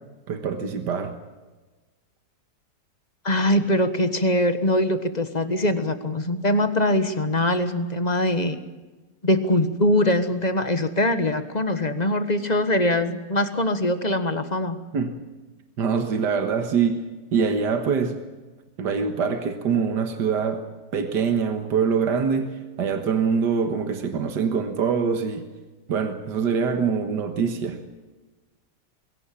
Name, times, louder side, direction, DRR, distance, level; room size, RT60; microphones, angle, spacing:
voice 1, 0.3-1.2 14.9-15.1 15.8-17.1 17.3-18.2 18.8-20.6 20.9-25.5 25.9-27.9, right 6 dB, 80° right, 7 dB, 2.1 m, -24 dB
voice 2, 3.2-8.6 9.2-14.8, left 1 dB, 25° left, 10 dB, 1.4 m, -22 dB
21.5 x 17.0 x 8.6 m, 1.2 s
omnidirectional pair, 1.8 m